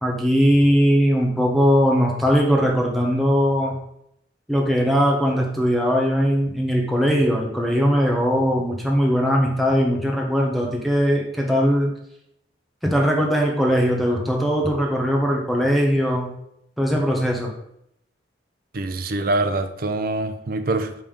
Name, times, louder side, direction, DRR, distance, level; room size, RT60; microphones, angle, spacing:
voice 1, 0.0-3.7 4.5-11.9 12.8-16.3 16.8-17.5, equal, ahead, -1 dB, 1.0 m, -20 dB
voice 2, 18.7-21.0, right 2 dB, 50° right, 9 dB, 0.5 m, -24 dB
5.3 x 3.5 x 5.4 m, 0.76 s
head